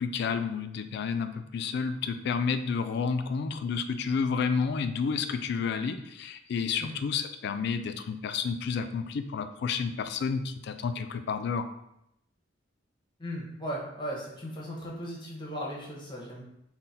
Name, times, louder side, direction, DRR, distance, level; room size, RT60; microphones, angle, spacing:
voice 1, 0.0-11.7, left 5 dB, 60° left, 9 dB, 0.3 m, -30 dB
voice 2, 13.2-16.4, equal, 25° left, -3 dB, 0.9 m, -37 dB
3.8 x 2.2 x 4.1 m, 0.82 s
head